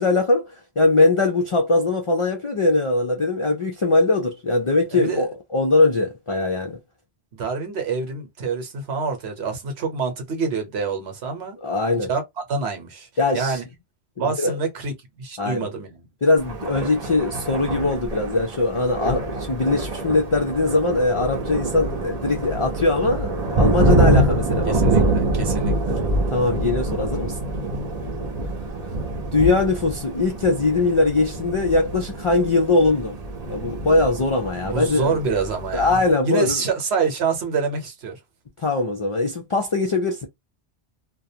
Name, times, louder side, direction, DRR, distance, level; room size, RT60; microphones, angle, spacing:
voice 1, 0.0-6.8 11.6-12.1 13.2-13.6 14.2-14.6 15.4-15.7 16.2-25.1 26.3-27.4 29.3-33.1 33.5-35.2 35.7-36.6 38.6-40.3, left 2 dB, 55° left, 0.3 m, -21 dB
voice 2, 4.9-5.3 7.3-11.6 12.0-12.2 12.5-13.6 14.2-16.0 24.6-26.0 34.6-38.2, right 4 dB, 75° right, 1.1 m, -27 dB
Thunder, 16.4-36.1, right 2 dB, 45° right, 0.6 m, -25 dB
2.4 x 2.2 x 2.7 m
omnidirectional pair, 1.1 m